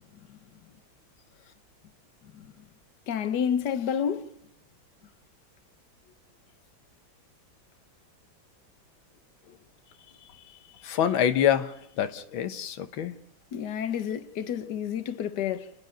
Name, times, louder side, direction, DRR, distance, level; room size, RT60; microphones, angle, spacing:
voice 1, 2.2-2.7 3.1-4.4 13.5-15.7, left 8 dB, 60° left, 1.7 m, -30 dB
voice 2, 10.8-13.1, left 9 dB, 90° left, 1.9 m, -26 dB
30.0 x 10.5 x 9.4 m
omnidirectional pair, 2.1 m